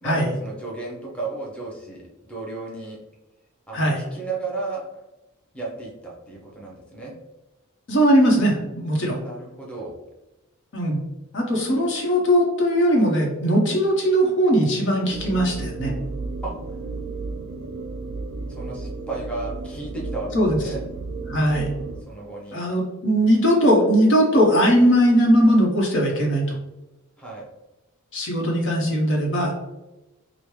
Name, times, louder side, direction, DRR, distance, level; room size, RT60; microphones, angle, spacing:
voice 1, 0.0-3.0 3.7-5.0 5.5-7.1 9.1-10.0 16.4-16.5 18.5-20.8 22.1-22.6 27.2-27.5, right 3 dB, 5° left, -4 dB, 0.7 m, -34 dB
voice 2, 7.9-9.2 10.7-11.0 11.3-15.9 20.3-20.6 21.3-21.7 22.5-26.5 28.1-29.5, equal, 60° left, -1 dB, 0.9 m, -19 dB
sound 1, 15.1-22.0, right 3 dB, 65° right, 0.4 m, -33 dB
5.0 x 2.1 x 3.1 m, 1.0 s
head